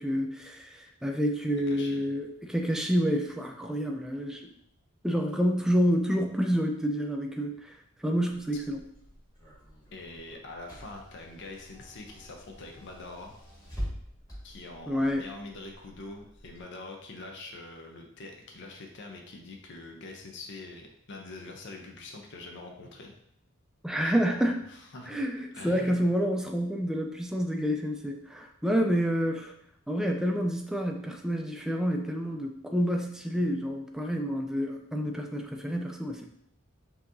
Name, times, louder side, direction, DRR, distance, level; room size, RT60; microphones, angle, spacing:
voice 1, 0.0-4.5 5.0-7.7 8.0-8.8 14.9-15.2 23.8-24.6 25.1-29.5 29.9-36.3, equal, 5° right, 3 dB, 0.4 m, -28 dB
voice 2, 1.7-2.0 9.9-13.3 14.4-23.1 24.0-24.4 24.7-25.3 25.5-26.0, left 2 dB, 60° left, 2 dB, 0.7 m, -44 dB
Car / Engine, 8.3-16.6, equal, 20° left, 1.6 m, -45 dB
5.7 x 2.8 x 2.6 m, 0.73 s
head